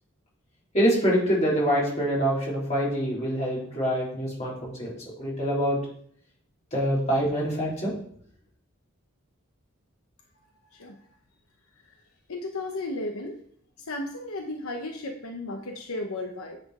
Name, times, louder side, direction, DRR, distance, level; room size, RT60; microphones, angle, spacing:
voice 1, 0.7-4.9 5.2-5.8 6.7-7.9, equal, 30° left, -6 dB, 3.6 m, -25 dB
voice 2, 12.3-13.4 13.8-16.6, left 2 dB, 80° left, 3 dB, 0.9 m, -34 dB
9.1 x 4.4 x 4.9 m, 0.62 s
head